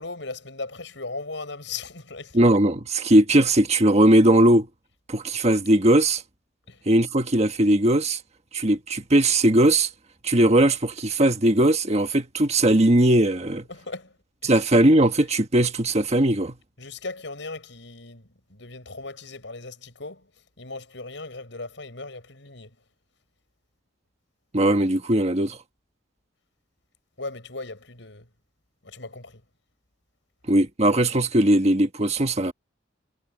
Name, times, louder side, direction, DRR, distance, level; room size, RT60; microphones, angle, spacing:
voice 1, 0.0-2.4 6.7-6.9 13.7-14.6 16.8-20.3 20.6-22.8 27.2-28.3 28.8-29.4, left 3 dB, 75° left, 6.9 m, -38 dB
voice 2, 2.3-4.7 5.1-6.2 6.9-8.2 8.5-9.9 10.2-13.7 14.4-16.5 24.5-25.6 30.5-32.5, right 1 dB, 35° right, 1.5 m, -19 dB
head